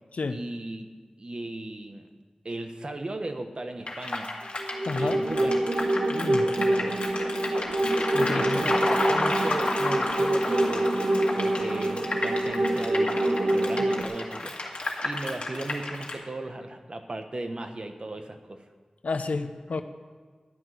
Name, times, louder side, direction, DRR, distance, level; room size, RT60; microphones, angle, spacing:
voice 1, 0.3-0.9 1.2-2.1 2.4-4.3 5.0-5.6 6.4-7.0 8.2-14.6 15.0-18.6, right 2 dB, 45° right, 6 dB, 1.0 m, -36 dB
sound 1, 3.9-16.1, left 2 dB, 55° left, 2.0 m, -31 dB
sound 2, 4.6-14.0, right 1 dB, 75° right, 1.0 m, -26 dB
voice 2, 4.8-5.2 6.1-6.5 8.1-8.6 19.0-19.8, left 3 dB, 85° left, 9 dB, 0.7 m, -30 dB
12.5 x 6.0 x 9.3 m, 1.5 s
wide cardioid pair, 70°, 2 cm